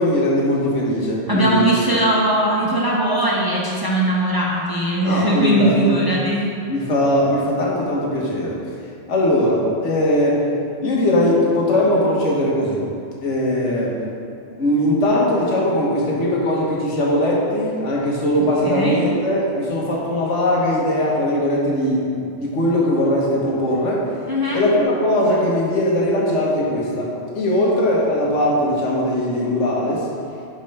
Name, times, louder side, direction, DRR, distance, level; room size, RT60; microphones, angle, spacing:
voice 1, 0.0-1.9 5.0-6.0 6.7-8.6 9.1-10.5 10.8-12.8 13.2-14.0 14.6-22.0 22.4-24.1 24.5-30.1, left 1 dB, 85° left, -4 dB, 1.6 m, -20 dB
voice 2, 1.3-6.5 18.6-19.0 24.3-24.6, right 1 dB, 20° right, -5 dB, 0.8 m, -20 dB
5.3 x 5.2 x 5.6 m, 2.4 s
omnidirectional pair, 1.2 m